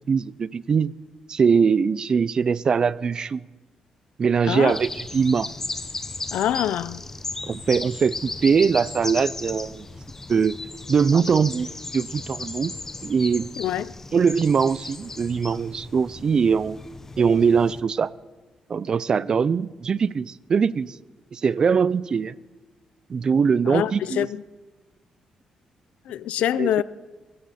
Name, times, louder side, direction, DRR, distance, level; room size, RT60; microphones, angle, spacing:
voice 1, 0.1-0.9 1.3-3.4 4.2-5.5 7.4-9.9 10.3-10.6 10.9-11.7 11.9-12.7 13.0-13.5 14.1-16.8 17.2-18.1 18.7-21.0 21.3-22.3 23.1-24.3 26.6-26.8, right 6 dB, 40° right, 0.4 m, -22 dB
sound 1, 4.7-17.8, left 3 dB, 20° left, 0.9 m, -36 dB
voice 2, 6.3-7.0 13.6-13.9 23.7-24.4 26.1-26.8, left 11 dB, 90° left, 0.5 m, -25 dB
23.5 x 14.0 x 4.2 m
cardioid pair, 125°, 2 cm